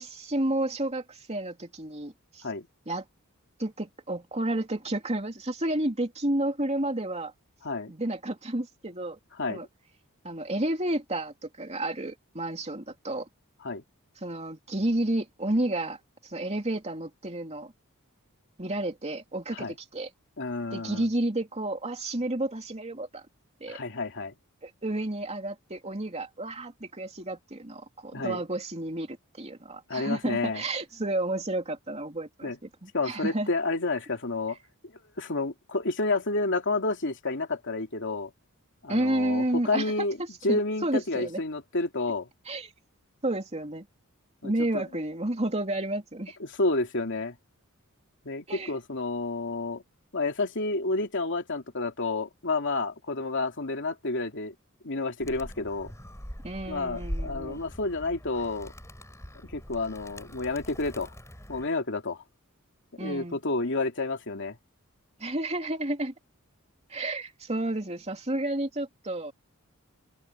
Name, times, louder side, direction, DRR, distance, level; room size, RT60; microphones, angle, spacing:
voice 1, 0.0-2.4 2.9-3.0 3.6-7.3 7.9-9.2 9.5-9.7 10.2-13.3 14.2-16.0 16.2-17.7 18.6-20.1 20.7-23.2 23.6-23.8 24.6-32.5 32.8-33.5 38.9-39.9 40.2-41.4 42.5-42.7 43.2-43.9 44.4-46.4 48.5-48.7 56.4-57.6 63.0-63.4 65.2-66.1 66.9-69.3, right 1 dB, 30° right, 3.0 m, -31 dB
voice 2, 9.4-9.7 13.6-13.8 19.5-19.7 20.4-21.1 23.7-24.3 28.1-28.4 29.9-30.6 32.4-32.6 32.9-34.6 35.2-38.3 38.8-40.2 40.4-42.3 44.4-44.8 46.4-47.4 48.2-49.8 50.1-54.5 54.8-55.9 56.6-58.7 59.4-61.1 61.5-62.2 62.9-64.6, left 3 dB, 60° left, 2.9 m, -30 dB
Animal, 55.2-61.7, equal, 15° left, 7.1 m, -41 dB
head